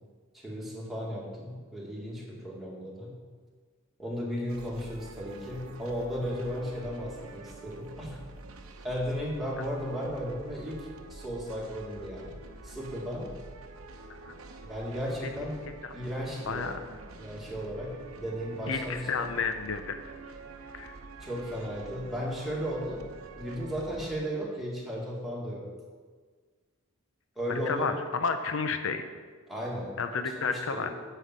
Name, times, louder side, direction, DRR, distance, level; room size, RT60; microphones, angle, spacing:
voice 1, 0.3-3.1 4.0-8.2 8.8-12.3 12.6-13.3 14.6-15.6 15.9-16.7 17.2-19.3 21.2-23.1 23.4-25.7 27.4-27.9 29.5-30.9, equal, ahead, -5 dB, 1.9 m, -35 dB
sound 1, 4.5-24.2, right 3 dB, 85° right, 0.9 m, -47 dB
voice 2, 18.7-19.9 20.7-20.9 27.5-29.0 30.0-30.9, left 5 dB, 65° left, 8 dB, 0.6 m, -31 dB
8.3 x 5.7 x 7.5 m, 1.5 s
head